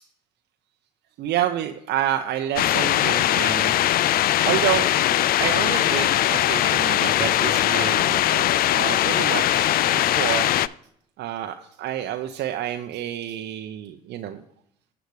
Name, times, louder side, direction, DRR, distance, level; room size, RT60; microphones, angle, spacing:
voice 1, 1.2-3.8 4.4-4.9 5.4-10.5 11.2-14.4, right 11 dB, 60° right, 6 dB, 0.7 m, -29 dB
sound 1, 2.6-10.7, left 13 dB, 50° left, 0.4 m, -20 dB
20.5 x 7.9 x 3.2 m, 0.71 s
hypercardioid pair, 50°, 20 cm